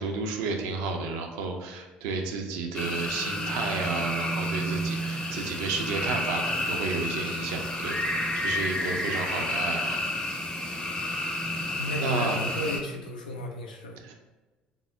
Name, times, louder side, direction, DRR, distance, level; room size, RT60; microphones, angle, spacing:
voice 1, 0.0-8.0 8.4-10.0 12.0-12.4 14.0-14.1, right 4 dB, 65° right, 3 dB, 0.5 m, -32 dB
sound 1, 2.7-12.8, left 1 dB, 20° left, 0.7 m, -30 dB
voice 2, 11.8-14.0, left 1 dB, 75° left, 2 dB, 0.4 m, -33 dB
3.6 x 2.0 x 3.4 m, 1.2 s
figure-of-eight pair, 55°, 5 cm